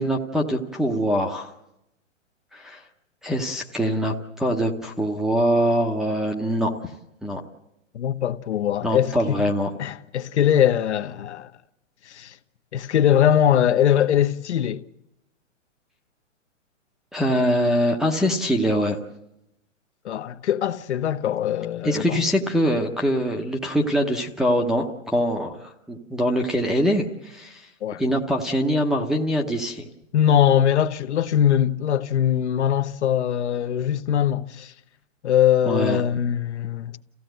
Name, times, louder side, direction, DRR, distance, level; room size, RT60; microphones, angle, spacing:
voice 1, 0.0-1.5 2.5-2.8 3.2-6.7 7.2-7.4 8.8-9.7 17.1-19.0 21.8-27.6 28.0-29.9 35.6-36.0, equal, ahead, 0.7 m, -23 dB
voice 2, 7.9-9.4 9.8-11.5 12.1-12.4 12.7-14.8 20.0-22.2 27.8-28.0 30.1-34.7 35.2-37.0, left 10 dB, 60° left, 1.0 m, -21 dB
28.0 x 15.5 x 7.9 m
hypercardioid pair, 145°, 38 cm